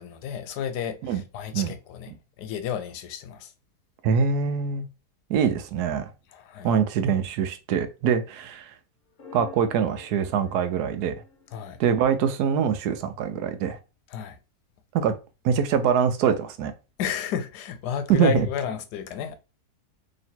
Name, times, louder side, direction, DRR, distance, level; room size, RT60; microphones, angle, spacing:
voice 1, 0.0-3.5 6.3-6.7 11.5-11.8 14.1-14.4 17.0-19.3, left 8 dB, 90° left, 1.2 m, -32 dB
voice 2, 4.0-4.9 5.3-6.1 6.6-8.7 9.3-11.2 11.8-13.8 14.9-15.2 15.4-16.7 18.1-18.5, right 7 dB, 75° right, 1.1 m, -24 dB
sound 1, 9.1-12.5, left 7 dB, 45° left, 0.7 m, -46 dB
3.1 x 2.9 x 4.2 m
omnidirectional pair, 1.7 m